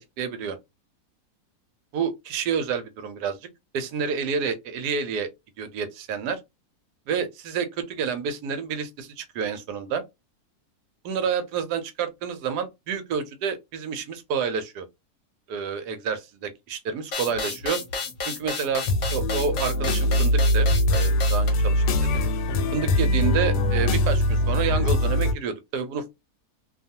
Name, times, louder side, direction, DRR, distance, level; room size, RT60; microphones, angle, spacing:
voice 1, 0.2-0.6 1.9-3.4 3.7-5.3 5.6-6.4 7.1-10.0 11.0-14.9 15.5-17.8 18.3-18.8 19.1-22.2 22.7-26.1, right 6 dB, 90° right, 1.2 m, -29 dB
sound 1, 17.1-21.5, left 4 dB, 50° left, 1.0 m, -32 dB
sound 2, 18.9-25.3, left 1 dB, 85° left, 1.2 m, -22 dB
2.7 x 2.3 x 2.7 m
omnidirectional pair, 1.7 m